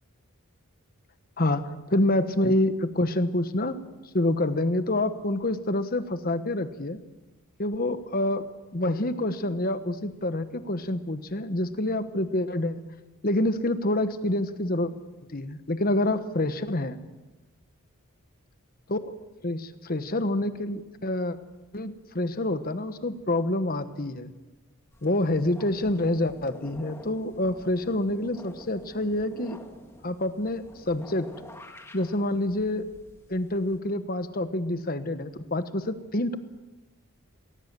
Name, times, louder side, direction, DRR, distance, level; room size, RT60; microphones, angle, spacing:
voice 1, 1.4-3.7 4.1-7.0 7.6-12.8 13.2-14.9 15.3-17.0 18.9-19.1 19.4-21.4 21.7-24.3 25.0-29.6 30.0-31.3 31.9-32.9 33.3-36.4, left 1 dB, 40° left, 10 dB, 1.2 m, -27 dB
sound 1, 24.9-33.8, left 1 dB, 10° left, 1.7 m, -48 dB
20.0 x 19.0 x 7.5 m, 1.1 s
head